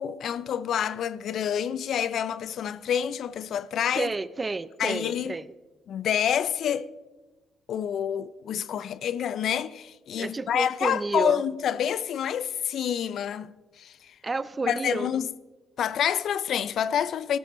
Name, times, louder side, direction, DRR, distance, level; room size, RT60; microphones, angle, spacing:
voice 1, 0.0-4.1 4.8-5.3 5.9-6.9 7.7-14.1 14.7-15.3 15.8-17.4, left 9 dB, 70° left, 0.4 m, -28 dB
voice 2, 4.0-5.5 10.2-11.4 14.2-15.1, right 3 dB, 25° right, 0.5 m, -30 dB
15.0 x 11.5 x 3.1 m
cardioid pair, 90°, 0 cm